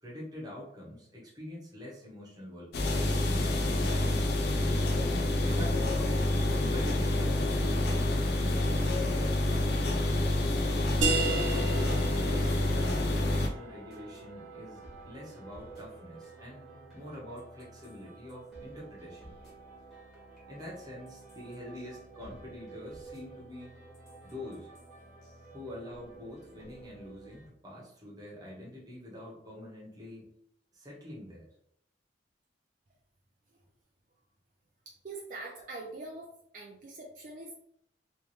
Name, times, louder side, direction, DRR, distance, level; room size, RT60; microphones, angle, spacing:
voice 1, 0.0-4.5 5.4-6.2 6.7-8.0 10.5-19.3 20.5-23.7 24.2-24.7 25.5-30.3 30.7-31.5, left 1 dB, 20° right, -4 dB, 1.2 m, -45 dB
sound 1, 2.7-13.5, left 1 dB, 60° left, 0.6 m, -28 dB
sound 2, 11.0-16.4, right 3 dB, 85° right, 0.7 m, -36 dB
sound 3, 11.4-27.5, right 3 dB, ahead, 1.5 m, -51 dB
voice 2, 34.9-37.5, right 2 dB, 45° right, -2 dB, 0.5 m, -43 dB
3.3 x 3.1 x 3.2 m, 0.72 s
head